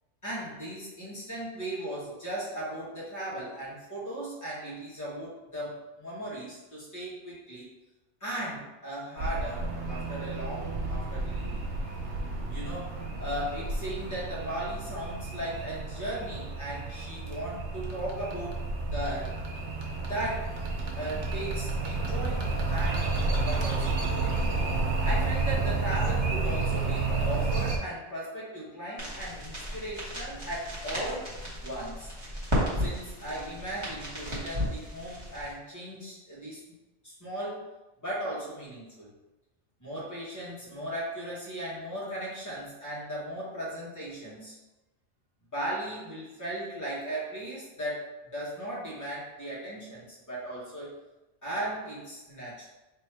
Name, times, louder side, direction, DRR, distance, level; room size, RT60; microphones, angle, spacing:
voice 1, 0.2-7.7 8.2-11.7 12.5-18.6 18.9-19.3 20.1-20.5 20.9-24.3 25.0-31.3 31.6-32.1 32.8-36.8 37.0-37.6 38.0-39.1 39.8-44.5 45.5-50.9 51.4-52.7, right 1 dB, 15° left, -8 dB, 1.4 m, -37 dB
sound 1, 9.2-27.8, right 3 dB, 75° right, 1.1 m, -31 dB
sound 2, 29.0-35.5, equal, 25° right, 1.2 m, -34 dB
3.4 x 2.9 x 4.6 m, 1.1 s
omnidirectional pair, 1.2 m